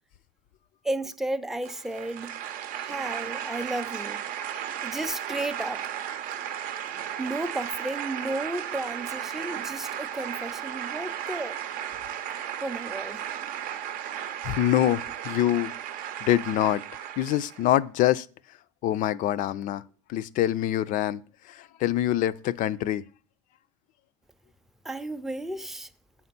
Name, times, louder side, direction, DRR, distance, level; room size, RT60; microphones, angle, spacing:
voice 1, 0.8-2.4 2.8-4.2 4.8-5.8 7.2-11.6 12.6-13.4 24.8-25.9, right 2 dB, ahead, 0.5 m, -33 dB
sound 1, 1.6-17.7, right 10 dB, 60° right, 0.6 m, -35 dB
voice 2, 14.4-15.7 16.2-16.8 17.2-18.3 18.8-19.8 20.1-21.2 21.5-23.0, left 12 dB, 55° left, 0.4 m, -25 dB
7.4 x 4.3 x 5.8 m
supercardioid pair, 95°, 16 cm